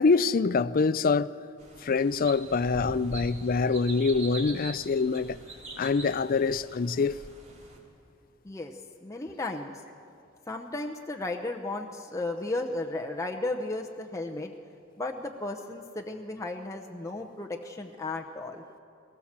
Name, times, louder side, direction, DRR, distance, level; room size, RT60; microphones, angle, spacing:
voice 1, 0.0-1.3 1.8-5.4 5.8-7.2, left 4 dB, 45° left, 0.4 m, -25 dB
sound 1, 1.6-7.8, right 2 dB, 35° right, 3.3 m, -43 dB
voice 2, 8.4-9.8 10.5-14.5 15.0-18.6, left 2 dB, 15° left, 0.8 m, -34 dB
20.0 x 18.5 x 7.4 m
head